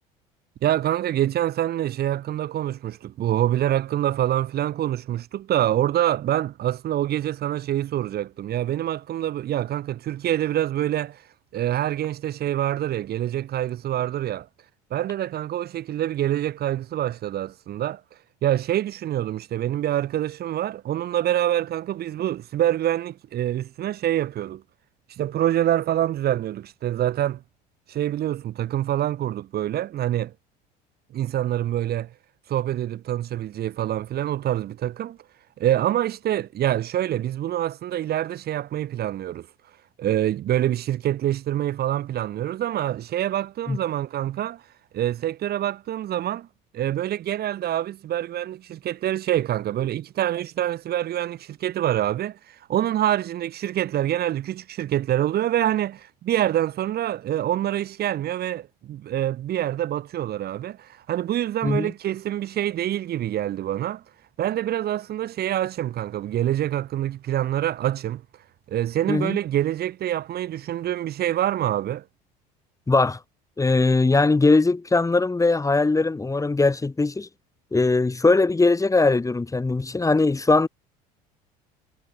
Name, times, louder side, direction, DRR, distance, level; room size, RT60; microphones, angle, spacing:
voice 1, 0.6-11.2 11.5-14.5 14.9-18.0 18.4-24.6 25.2-27.4 27.9-30.3 31.1-32.1 32.5-35.2 35.6-39.5 40.0-44.6 44.9-46.5 46.7-64.0 64.4-68.2 68.7-72.0, right 12 dB, 50° right, 1.6 m, -26 dB
voice 2, 72.9-73.2 73.6-77.3 77.7-80.7, left 3 dB, 15° left, 1.9 m, -20 dB
hypercardioid pair, 80°, 21 cm